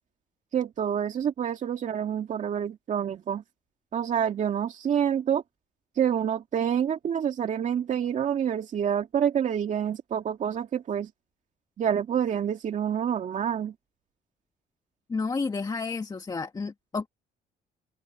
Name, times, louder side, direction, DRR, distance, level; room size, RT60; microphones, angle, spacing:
voice 1, 0.5-3.4 3.9-5.4 6.0-11.1 11.8-13.7, right 8 dB, 45° right, 2.2 m, -27 dB
voice 2, 15.1-17.1, left 4 dB, 25° left, 1.8 m, -31 dB
cardioid pair, 110°, 17 cm